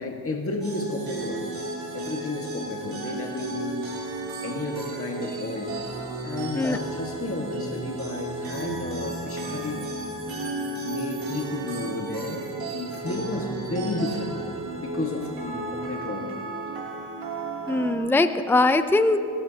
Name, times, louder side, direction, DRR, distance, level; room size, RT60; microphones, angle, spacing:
voice 1, 0.0-1.5 1.9-4.1 4.4-5.7 6.2-9.9 10.8-14.4 14.8-16.3, left 2 dB, 30° left, 0 dB, 1.8 m, -32 dB
sound 1, 0.6-17.9, right 2 dB, 80° right, 3.2 m, -34 dB
voice 2, 17.7-19.2, left 2 dB, 5° left, 10 dB, 0.6 m, -21 dB
30.0 x 13.5 x 2.9 m, 2.5 s
cardioid pair, 65°, 46 cm